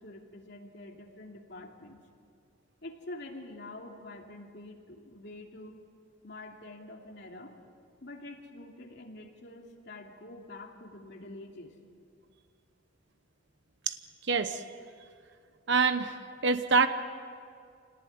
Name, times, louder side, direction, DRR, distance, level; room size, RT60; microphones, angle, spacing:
voice 1, 0.0-2.0 2.8-5.8 6.2-7.5 8.0-11.8, left 2 dB, 60° left, 1 dB, 2.8 m, -46 dB
voice 2, 14.3-14.6 15.7-16.2 16.4-16.9, right 4 dB, 60° right, 9 dB, 1.0 m, -25 dB
27.0 x 18.5 x 9.5 m, 2.3 s
head